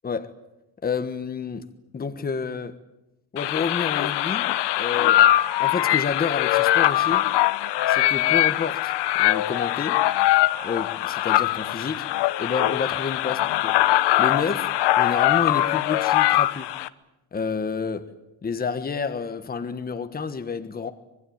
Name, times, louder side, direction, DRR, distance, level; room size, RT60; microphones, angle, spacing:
voice 1, 0.8-2.8 3.3-5.2 5.6-7.2 7.9-8.9 9.2-10.0 10.6-12.1 12.4-13.8 14.2-16.7 17.3-18.1 18.4-20.9, left 5 dB, 20° left, 1.4 m, -29 dB
sound 1, 3.4-16.9, left 14 dB, 60° left, 1.0 m, -22 dB
25.5 x 21.0 x 8.8 m
cardioid pair, 145°, 48 cm